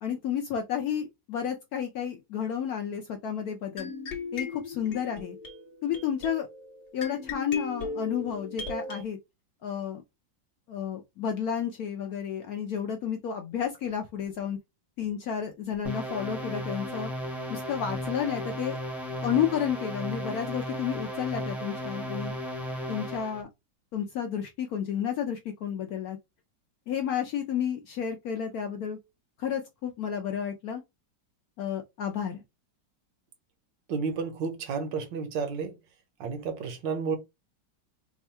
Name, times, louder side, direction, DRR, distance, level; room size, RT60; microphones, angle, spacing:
voice 1, 0.0-3.9 4.3-5.4 5.8-6.5 6.9-9.2 9.6-10.0 10.7-14.6 15.0-17.1 17.5-18.8 19.2-22.3 22.9-23.5 23.9-26.2 26.9-29.0 29.4-30.8 31.6-32.4, left 8 dB, 70° left, 0.9 m, -31 dB
sound 1, 3.8-9.0, left 3 dB, 45° left, 1.0 m, -38 dB
sound 2, 15.8-23.4, equal, ahead, 0.5 m, -35 dB
voice 2, 33.9-35.7 36.2-37.2, right 5 dB, 75° right, 1.5 m, -31 dB
3.5 x 2.2 x 4.2 m
omnidirectional pair, 2.1 m